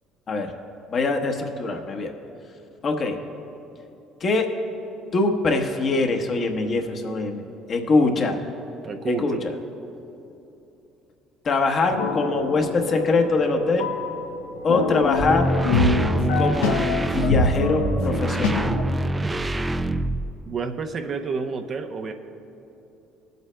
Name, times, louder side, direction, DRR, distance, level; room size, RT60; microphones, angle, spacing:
voice 1, 0.9-2.1 2.8-3.2 4.2-4.5 5.1-7.4 7.7-8.4 9.1-9.4 11.4-13.9 14.6-15.5 16.3-16.7 17.0-18.7, left 3 dB, 45° left, 3 dB, 1.0 m, -23 dB
voice 2, 8.8-9.5 20.5-22.1, right 5 dB, 45° right, 6 dB, 0.7 m, -29 dB
sound 1, 11.9-18.8, left 3 dB, 85° left, 0.7 m, -25 dB
sound 2, 15.0-20.5, right 1 dB, 20° right, 0.3 m, -26 dB
21.0 x 8.0 x 2.2 m, 3.0 s
supercardioid pair, 85°, 0 cm